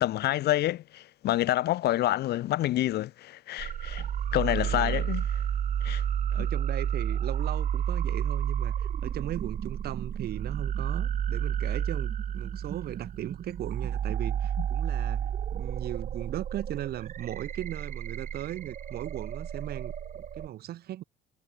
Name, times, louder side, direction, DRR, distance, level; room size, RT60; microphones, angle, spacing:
voice 1, 0.0-4.1 4.3-5.2 5.8-6.0 6.4-6.5, left 14 dB, 75° left, 5.9 m, -28 dB
sound 1, 3.6-20.5, right 9 dB, 50° right, 7.3 m, -31 dB
voice 2, 4.5-5.0 6.3-15.2 15.5-21.0, right 13 dB, 65° right, 6.5 m, -38 dB
cardioid pair, 110°, 17 cm